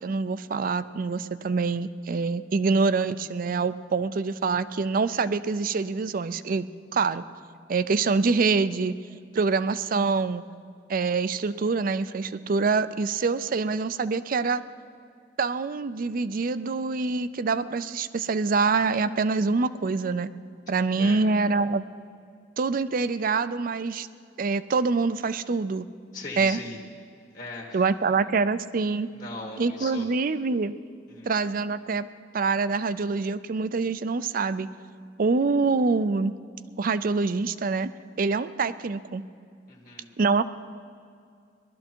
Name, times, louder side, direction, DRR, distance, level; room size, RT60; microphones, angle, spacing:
voice 1, 0.0-6.7 6.9-7.2 7.7-9.0 9.3-10.4 10.9-14.6 15.4-20.3 20.7-21.8 22.6-24.1 24.4-25.9 26.4-26.6 27.7-29.1 29.6-30.7 31.2-32.1 32.3-34.7 35.2-36.3 36.8-37.9 38.2-39.2 40.2-40.4, right 4 dB, 50° right, 14 dB, 0.4 m, -25 dB
voice 2, 21.0-21.3 26.1-26.8 27.3-27.8 29.1-30.0 31.1-31.3 39.7-40.1, left 2 dB, 45° left, -1 dB, 1.5 m, -39 dB
19.5 x 12.5 x 4.5 m, 2.3 s
head